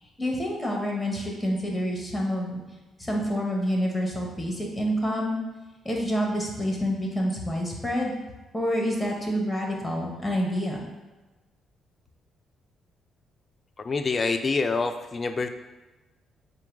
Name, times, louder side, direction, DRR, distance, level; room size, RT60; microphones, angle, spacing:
voice 1, 0.0-2.6 3.0-5.4 5.8-8.1 8.5-10.8, equal, 5° left, -1 dB, 1.1 m, -28 dB
voice 2, 13.8-15.5, left 4 dB, 35° left, 8 dB, 0.4 m, -26 dB
4.6 x 2.2 x 4.5 m, 1.2 s
cardioid pair, 90°, 0 cm